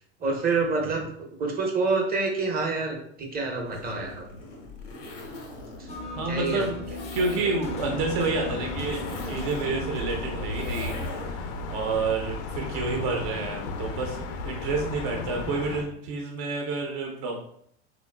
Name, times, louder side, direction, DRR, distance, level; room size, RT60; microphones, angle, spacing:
voice 1, 0.2-1.1 1.4-4.3 6.3-6.7, right 3 dB, 25° right, 1 dB, 0.8 m, -27 dB
Zipper (clothing), 3.6-11.5, left 2 dB, 85° left, 0.8 m, -41 dB
sound 1, 5.9-12.4, left 3 dB, 20° left, 0.4 m, -40 dB
voice 2, 6.2-14.2 14.4-17.4, right 3 dB, 60° right, 1 dB, 0.7 m, -29 dB
sound 2, 7.6-15.8, left 3 dB, 70° left, 0.5 m, -34 dB
3.7 x 2.3 x 2.2 m, 0.67 s
hypercardioid pair, 90°, 35 cm